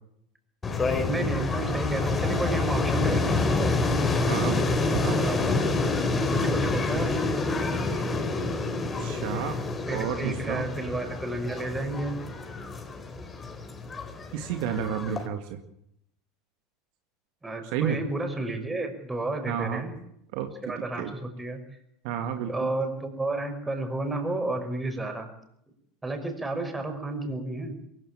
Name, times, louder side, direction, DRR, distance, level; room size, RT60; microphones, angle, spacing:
sound 1, 0.6-15.3, left 3 dB, 25° left, 4.0 m, -27 dB
voice 1, 1.1-3.8 5.2-5.8 6.3-7.2 9.9-12.2 17.4-19.9 20.6-21.6 22.5-25.3 26.0-27.8, right 2 dB, 15° right, 6 dB, 5.8 m, -32 dB
voice 2, 4.3-4.6 5.0-5.2 9.0-9.6 9.9-10.7 14.3-15.6 17.7-18.0 19.5-19.9 20.3-20.5 20.8-21.1 22.0-22.7, right 8 dB, 60° right, 7 dB, 1.9 m, -31 dB
23.0 x 15.5 x 8.9 m, 0.76 s
hypercardioid pair, 80°, 0 cm